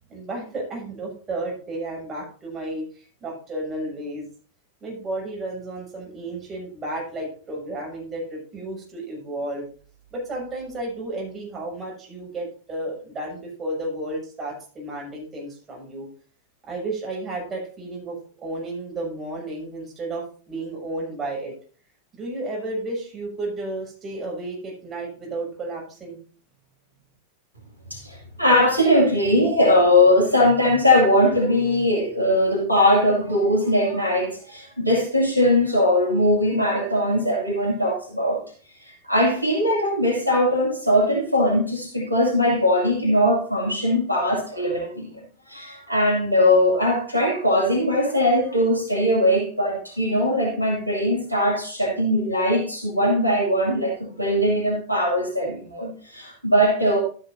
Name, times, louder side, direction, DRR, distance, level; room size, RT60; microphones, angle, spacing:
voice 1, 0.1-4.2 4.8-9.6 10.1-16.1 16.6-21.5 22.1-26.2, right 2 dB, 20° right, -2 dB, 6.2 m, -32 dB
voice 2, 27.9-38.4 38.8-45.1 45.5-57.0, left 1 dB, 90° right, -1 dB, 2.3 m, -20 dB
12.5 x 9.6 x 2.7 m, 0.41 s
figure-of-eight pair, 90°, 0 cm